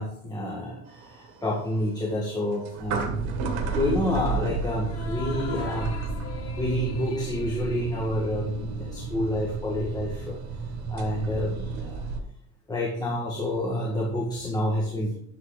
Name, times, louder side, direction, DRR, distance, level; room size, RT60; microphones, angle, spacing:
voice 1, 0.0-3.2 3.8-5.9 6.6-10.4 10.9-12.0 12.7-15.1, left 1 dB, 10° left, -2 dB, 1.8 m, -28 dB
sound 1, 0.9-12.2, right 4 dB, 60° right, 1.9 m, -33 dB
sound 2, 4.8-9.5, left 4 dB, 50° left, 1.9 m, -42 dB
11.5 x 7.6 x 4.0 m, 0.70 s
cardioid pair, 145°, 31 cm